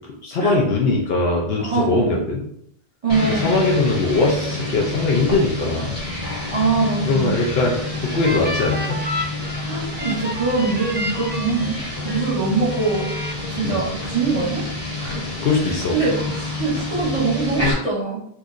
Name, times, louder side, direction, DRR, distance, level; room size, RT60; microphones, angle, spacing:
voice 1, 0.2-2.5 3.3-5.9 7.0-9.0 13.6-13.8 15.4-16.0, left 3 dB, 75° left, -1 dB, 0.8 m, -21 dB
voice 2, 1.6-2.2 3.0-3.7 6.5-7.4 9.6-11.8 12.0-13.1 13.6-14.6 14.9-15.2 15.6-18.2, right 4 dB, 40° right, -6 dB, 0.7 m, -23 dB
sound 1, 3.1-17.7, left 2 dB, 35° left, 1.5 m, -28 dB
sound 2, 7.2-12.3 12.7-13.3, left 1 dB, 15° right, 0.3 m, -31 dB
4.4 x 2.5 x 2.4 m, 0.73 s
omnidirectional pair, 1.1 m